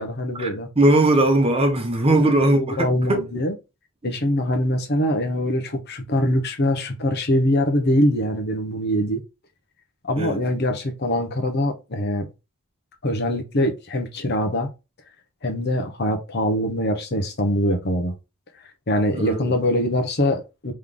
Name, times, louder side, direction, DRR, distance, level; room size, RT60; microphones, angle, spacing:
voice 1, 0.0-0.7 2.2-3.5 4.0-9.2 10.0-12.3 13.0-14.7 15.4-18.1 18.9-20.7, left 1 dB, 50° left, 0.9 m, -23 dB
voice 2, 0.8-3.2 10.2-10.4 19.1-19.6, right 1 dB, 25° right, 0.9 m, -19 dB
3.7 x 3.2 x 3.7 m
head